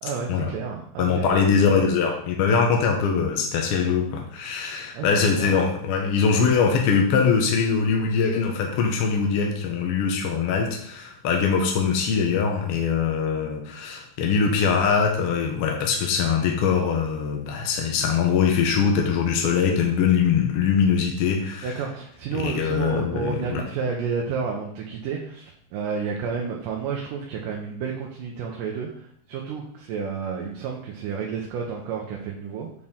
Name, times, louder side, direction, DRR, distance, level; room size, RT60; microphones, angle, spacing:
voice 1, 0.0-2.0 4.9-5.6 21.6-32.7, right 6 dB, 85° right, 0 dB, 2.4 m, -31 dB
voice 2, 1.0-21.7 22.3-23.6, left 6 dB, 70° left, 1 dB, 1.4 m, -22 dB
7.3 x 4.3 x 3.6 m, 0.65 s
omnidirectional pair, 3.7 m